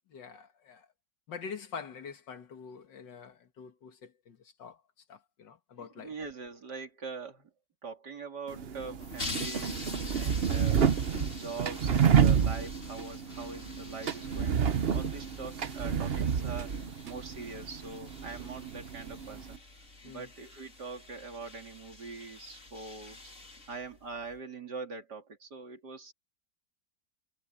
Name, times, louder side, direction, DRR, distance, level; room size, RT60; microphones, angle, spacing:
voice 1, 0.1-0.9 1.3-4.8 5.1-6.1 20.0-20.3, left 6 dB, 80° left, 2.3 m, -45 dB
voice 2, 5.8-7.5 7.8-10.9 11.2-19.6 20.0-23.3 23.7-26.1, right 4 dB, 65° right, 3.4 m, -43 dB
sound 1, 8.5-19.6, right 7 dB, 45° right, 0.8 m, -29 dB
sound 2, 9.0-24.4, left 2 dB, 40° left, 3.6 m, -46 dB
omnidirectional pair, 1.9 m